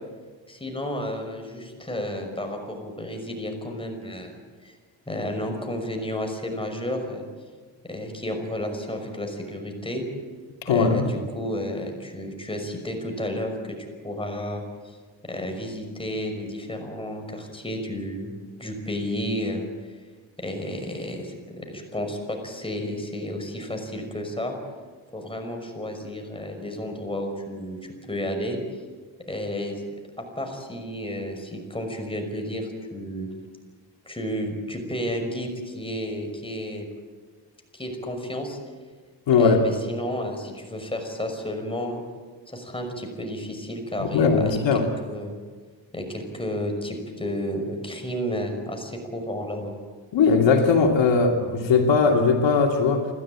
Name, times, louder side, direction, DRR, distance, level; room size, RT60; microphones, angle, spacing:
voice 1, 0.5-4.3 4.6-4.8 5.1-7.3 7.8-10.0 10.7-13.5 14.0-15.0 15.3-18.3 18.6-19.7 20.4-24.5 25.1-28.6 29.3-29.8 30.2-33.3 34.0-36.9 37.7-38.6 39.4-42.0 42.5-45.3 45.9-49.7, equal, 10° left, 3 dB, 5.7 m, -32 dB
voice 2, 10.6-11.1 39.3-39.6 44.0-44.9 50.1-53.1, left 5 dB, 80° left, 2 dB, 2.8 m, -19 dB
29.5 x 13.0 x 8.9 m, 1.5 s
cardioid pair, 90°, 44 cm